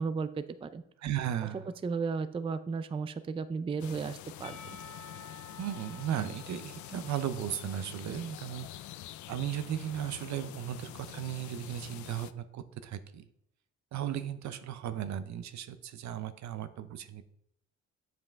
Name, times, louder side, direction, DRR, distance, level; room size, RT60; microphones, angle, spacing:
voice 1, 0.0-0.8 1.8-4.8, right 5 dB, 20° right, 12 dB, 0.4 m, -34 dB
voice 2, 1.0-1.7 5.6-8.8 9.3-13.3 13.9-17.2, right 10 dB, 65° right, 12 dB, 0.7 m, -36 dB
sound 1, 3.8-12.3, left 13 dB, 70° left, 0.4 m, -46 dB
Percussion / Church bell, 4.4-8.8, left 3 dB, 85° left, 0.9 m, -52 dB
7.7 x 5.3 x 3.5 m, 0.74 s
cardioid pair, 90°, 30 cm